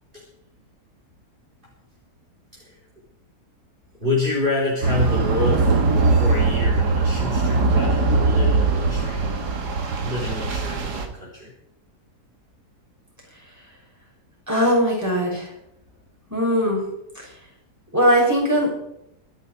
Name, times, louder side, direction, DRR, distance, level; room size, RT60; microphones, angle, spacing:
voice 1, 4.0-9.4 10.0-11.5, left 2 dB, 30° right, -6 dB, 4.3 m, -28 dB
sound 1, 4.8-11.1, right 3 dB, 80° right, 2.3 m, -20 dB
voice 2, 14.5-15.5 16.3-16.8 17.1-17.2 17.9-18.9, equal, 10° right, -3 dB, 6.4 m, -20 dB
25.0 x 9.5 x 4.7 m, 0.79 s
omnidirectional pair, 1.7 m